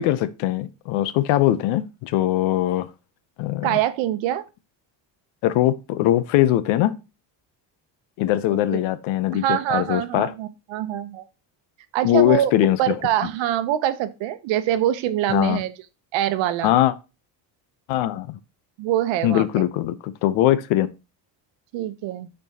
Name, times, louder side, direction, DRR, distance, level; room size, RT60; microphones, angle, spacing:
voice 1, 0.0-2.9 3.4-3.8 5.4-7.0 8.2-10.3 12.0-13.0 15.3-15.6 16.6-16.9 17.9-18.4 19.2-20.9, left 13 dB, 90° left, 0.8 m, -21 dB
voice 2, 3.6-4.4 8.5-8.8 9.3-11.3 11.9-12.5 12.8-15.7 16.1-16.8 18.8-19.4 21.7-22.3, right 12 dB, 75° right, 0.9 m, -24 dB
12.0 x 4.4 x 2.8 m
cardioid pair, 145°, 46 cm